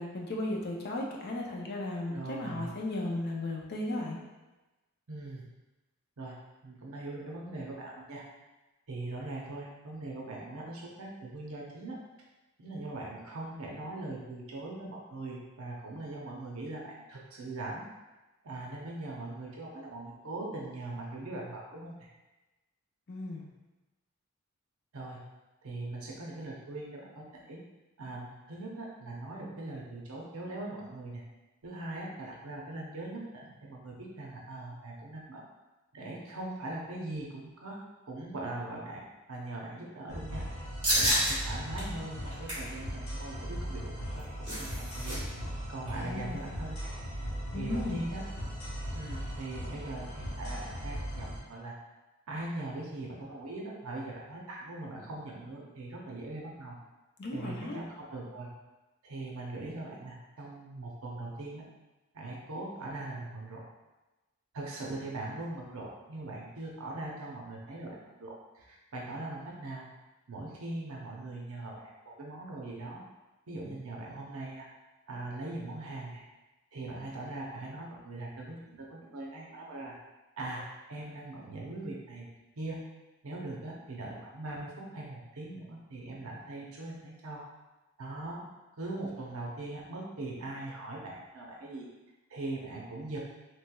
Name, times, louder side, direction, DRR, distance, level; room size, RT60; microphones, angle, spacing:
voice 1, 0.0-4.2 23.1-23.5 46.0-46.4 47.5-48.0 57.2-57.8, left 2 dB, 45° left, -2 dB, 0.5 m, -35 dB
voice 2, 2.0-2.7 5.1-5.4 6.2-6.4 6.6-8.2 8.9-12.0 12.6-17.8 18.4-22.1 24.9-25.2 25.6-27.2 27.5-27.6 28.0-31.2 31.6-35.5 35.9-37.8 38.1-40.4 40.9-44.3 44.5-45.2 45.7-46.9 47.5-48.2 48.9-51.8 52.3-56.7 57.3-58.5 59.0-61.6 62.1-63.6 64.5-69.9 70.3-73.0 73.5-74.7 75.1-76.2 76.7-79.9 80.4-82.3 82.6-82.8 83.2-87.4 88.0-88.4 88.8-91.9 92.3-93.2, right 2 dB, 75° right, -2 dB, 0.6 m, -41 dB
sound 1, 40.1-51.4, equal, 70° left, 1.1 m, -38 dB
sound 2, 40.8-41.3 41.8-41.9 42.3-42.7 44.0-45.2 45.4-45.5 45.9-46.2, right 1 dB, 20° right, 1.4 m, -29 dB
3.2 x 3.1 x 2.3 m, 1.1 s
head